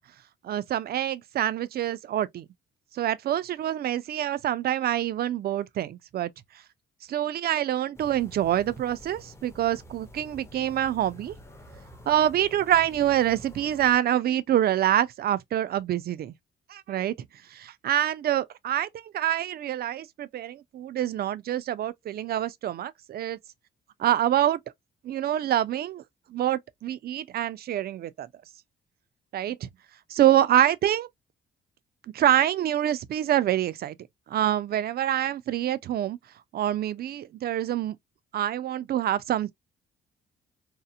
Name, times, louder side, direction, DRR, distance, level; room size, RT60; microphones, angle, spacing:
voice 1, 0.4-2.5 2.9-6.3 7.1-11.3 12.1-16.3 16.7-17.1 17.5-18.9 19.1-23.4 24.0-24.6 25.0-26.0 26.3-28.3 29.3-29.7 30.1-31.1 32.1-34.0 34.3-36.2 36.5-38.0 38.3-39.5, right 11 dB, 50° right, 0.4 m, -26 dB
sound 1, 7.9-14.0, equal, 15° left, 0.6 m, -48 dB
2.8 x 2.0 x 2.4 m
cardioid pair, 90°, 20 cm